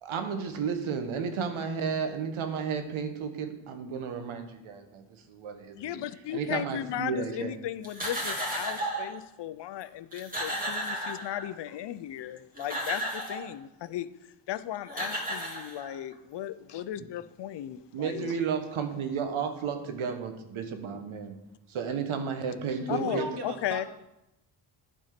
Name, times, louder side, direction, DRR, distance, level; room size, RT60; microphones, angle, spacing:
voice 1, 0.0-6.0 6.3-7.6 17.9-21.4 21.7-23.3, right 6 dB, 75° right, 6 dB, 1.2 m, -33 dB
voice 2, 5.7-14.1 14.5-18.3 22.9-23.8, left 12 dB, 60° left, 15 dB, 0.5 m, -36 dB
sound 1, 7.8-9.1 9.8-9.9 10.1-11.7 12.4-13.5 14.5-14.6 14.9-16.1, right 1 dB, 15° right, 2.2 m, -34 dB
voice 3, 16.7-17.1 23.0-23.9, right 4 dB, 55° right, 6 dB, 1.4 m, -38 dB
9.2 x 4.4 x 5.8 m, 0.91 s
cardioid pair, 80°, 48 cm